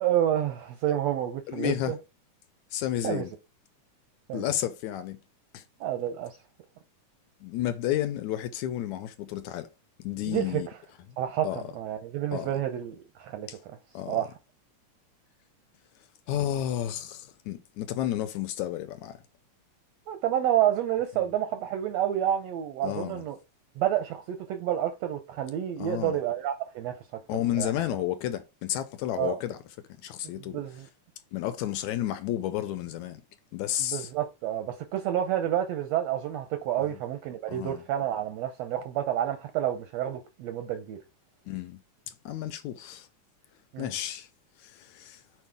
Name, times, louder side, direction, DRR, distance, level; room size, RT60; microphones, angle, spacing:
voice 1, 0.0-1.7 3.0-3.2 4.3-4.5 5.8-6.4 10.3-10.6 11.2-13.5 14.1-14.3 20.1-23.4 23.8-27.0 27.6-27.7 29.2-29.4 30.5-30.9 33.8-41.0 43.7-43.9, right 11 dB, 75° right, 1.5 m, -29 dB
voice 2, 1.5-1.9 2.7-3.3 4.3-5.2 5.5-5.6 7.4-9.7 10.0-10.7 11.4-11.6 12.3-12.5 13.5-13.6 13.9-14.2 16.3-19.2 22.8-23.2 25.8-26.2 27.3-29.6 30.0-30.6 31.3-33.2 33.5-34.1 36.8-37.0 37.5-37.8 41.5-41.8 42.1-43.1 43.8-44.3 44.6-45.2, left 12 dB, 80° left, 1.9 m, -32 dB
6.3 x 4.6 x 3.4 m
omnidirectional pair, 3.5 m